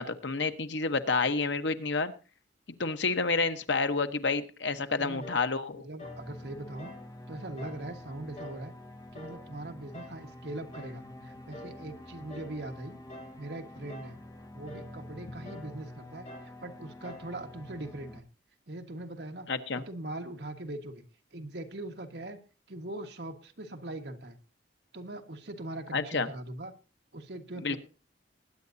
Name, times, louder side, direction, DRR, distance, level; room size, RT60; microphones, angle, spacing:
voice 1, 0.0-2.1 2.8-5.9 19.5-19.8 25.9-26.3 27.6-27.8, left 4 dB, 80° left, 9 dB, 1.1 m, -29 dB
voice 2, 4.7-5.3 5.7-6.9 7.3-8.7 9.1-13.0 13.4-14.2 14.5-18.2 18.7-19.5 19.7-21.0 21.3-22.4 22.7-24.4 24.9-26.7 27.1-27.8, right 1 dB, 65° right, 5 dB, 1.6 m, -41 dB
sound 1, 5.2-5.5 6.0-6.3 6.8-7.1 7.6-7.9 8.4-8.7 9.1-9.5 9.9-10.2 10.7-11.0 11.5-11.8 12.3-12.6 13.1-13.4 13.9-14.2 14.7-14.9 15.5-15.7 16.3-16.6 17.0-17.3, left 1 dB, 40° left, 3.2 m, -47 dB
sound 2, 6.0-18.2, left 1 dB, 20° left, 1.7 m, -47 dB
20.5 x 9.6 x 2.7 m, 0.36 s
head